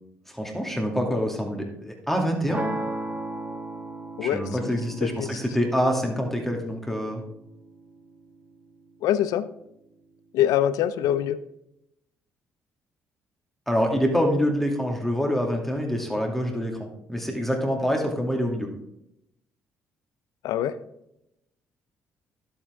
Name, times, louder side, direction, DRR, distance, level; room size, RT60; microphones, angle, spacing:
voice 1, 0.3-2.6 4.2-7.2 13.7-18.7, equal, 5° left, 1 dB, 2.4 m, -26 dB
sound 1, 2.5-8.5, right 2 dB, 20° right, 2.1 m, -36 dB
voice 2, 4.2-4.7 5.2-5.3 9.0-9.5 10.3-11.4 20.4-20.7, left 11 dB, 70° left, 15 dB, 0.6 m, -24 dB
11.5 x 8.0 x 3.6 m, 0.82 s
hypercardioid pair, 50°, 6 cm